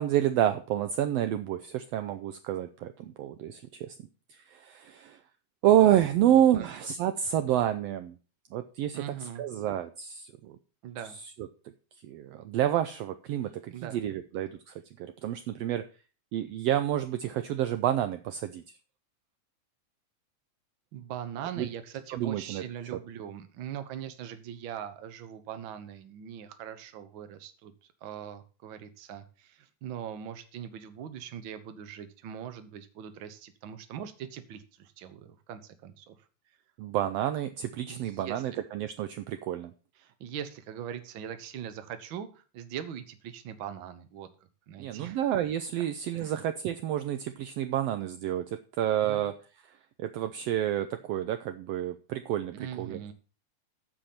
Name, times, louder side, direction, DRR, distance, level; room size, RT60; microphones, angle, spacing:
voice 1, 0.0-4.0 4.3-5.2 5.6-8.1 8.5-9.0 9.4-10.6 12.0-15.8 16.3-18.6 21.6-21.7 22.1-22.6 36.8-39.7 44.8-49.3 50.0-53.1, right 11 dB, 75° right, 10 dB, 1.5 m, -29 dB
voice 2, 6.2-6.7 8.9-9.4 10.8-11.2 13.7-14.0 20.9-27.7 28.0-36.2 37.9-38.4 40.0-44.3 44.7-45.2 46.1-46.3 49.0-49.3 52.5-53.1, right 9 dB, 55° right, 9 dB, 1.5 m, -41 dB
14.0 x 5.0 x 5.7 m, 0.36 s
omnidirectional pair, 3.3 m